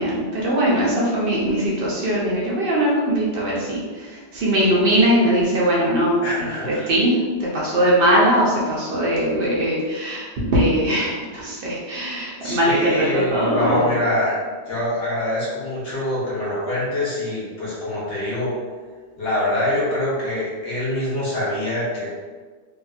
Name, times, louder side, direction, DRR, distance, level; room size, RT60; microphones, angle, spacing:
voice 1, 0.0-13.9, equal, 60° right, -5 dB, 0.8 m, -20 dB
voice 2, 6.2-6.8 12.4-14.4 14.7-18.5 19.2-22.1, left 1 dB, 70° left, -7 dB, 1.2 m, -25 dB
2.8 x 2.5 x 2.3 m, 1.5 s
omnidirectional pair, 1.2 m